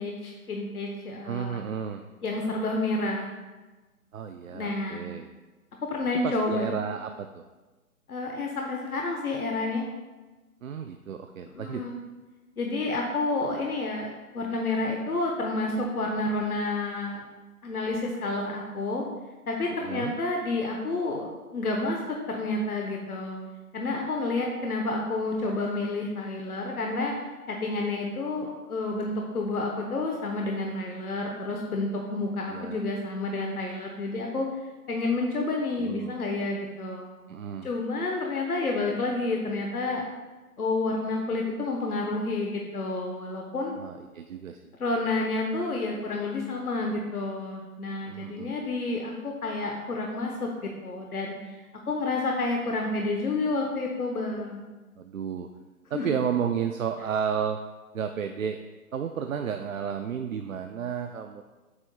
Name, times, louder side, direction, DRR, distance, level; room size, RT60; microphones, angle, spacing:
voice 1, 0.0-1.6 2.2-3.3 4.5-5.0 5.9-6.7 8.1-9.9 11.5-12.0 12.6-17.2 17.6-19.1 19.5-22.0 22.3-23.4 23.7-27.1 27.5-34.5 34.9-37.1 37.6-40.0 40.6-43.7 44.8-51.6 51.9-54.6 55.9-56.1, left 2 dB, 75° left, 1 dB, 1.0 m, -29 dB
voice 2, 1.2-2.0 4.1-5.3 6.2-7.4 10.6-11.9 19.8-20.1 32.5-32.8 35.8-36.2 37.3-37.7 43.8-44.7 48.0-48.5 55.0-55.5 55.9-57.6 57.9-58.6 58.9-61.4, right 7 dB, 65° right, 6 dB, 0.5 m, -32 dB
8.0 x 2.7 x 5.4 m, 1.2 s
figure-of-eight pair, 145°, 45 cm